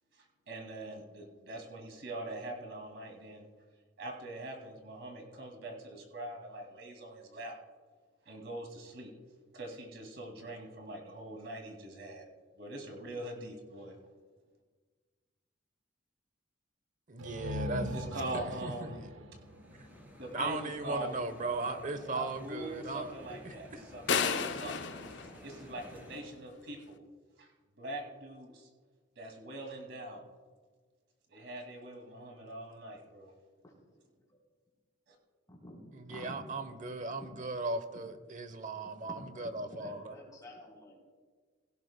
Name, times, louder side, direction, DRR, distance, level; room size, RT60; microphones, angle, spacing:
voice 1, 0.1-3.5 4.0-7.6 8.3-9.1 9.5-12.3 12.6-14.0 17.9-19.0 20.2-21.2 21.4-25.0 25.4-27.0 27.4-27.5 27.8-28.7 29.2-30.2 31.3-33.3 35.1-35.2, right 1 dB, 65° right, 2 dB, 2.3 m, -43 dB
voice 2, 17.1-18.0 18.3-19.1 20.3-23.6 35.9-40.1, right 2 dB, 40° right, 10 dB, 0.8 m, -38 dB
sound 1, 17.2-20.9, equal, 90° right, 0.9 m, -40 dB
sound 2, 19.4-26.2, equal, 10° right, 2.5 m, -54 dB
sound 3, 24.1-26.2, left 6 dB, 65° left, 0.7 m, -33 dB
voice 3, 35.5-36.3 37.1-37.6 39.0-39.2 39.6-41.0, left 1 dB, 20° left, -3 dB, 3.6 m, -50 dB
17.0 x 16.5 x 2.2 m, 1.5 s
head